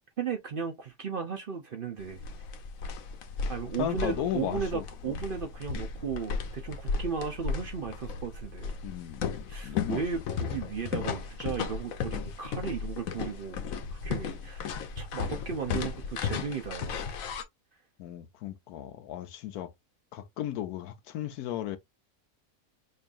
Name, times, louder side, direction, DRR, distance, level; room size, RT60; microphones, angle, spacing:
voice 1, 0.2-2.2 3.5-8.7 9.5-14.6 15.0-17.0, right 6 dB, 50° right, 0.7 m, -35 dB
sound 1, 2.0-17.4, left 5 dB, 70° left, 1.1 m, -35 dB
voice 2, 3.8-4.8 8.8-9.3 9.6-10.0 18.0-19.7 20.1-21.8, left 11 dB, 90° left, 1.2 m, -35 dB
5.3 x 2.5 x 2.4 m
omnidirectional pair, 1.6 m